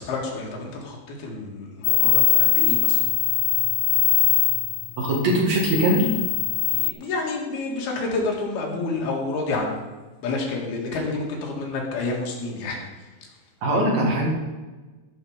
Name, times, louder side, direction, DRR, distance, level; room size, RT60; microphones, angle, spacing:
voice 1, 0.0-3.1 6.7-9.8 10.2-13.3, left 3 dB, 60° left, -1 dB, 3.4 m, -29 dB
sound 1, 1.8-6.9, left 20 dB, 80° left, 2.9 m, -22 dB
voice 2, 5.0-6.1 13.6-14.3, right 1 dB, 50° right, -2 dB, 2.3 m, -21 dB
15.0 x 5.5 x 5.0 m, 1.2 s
omnidirectional pair, 5.7 m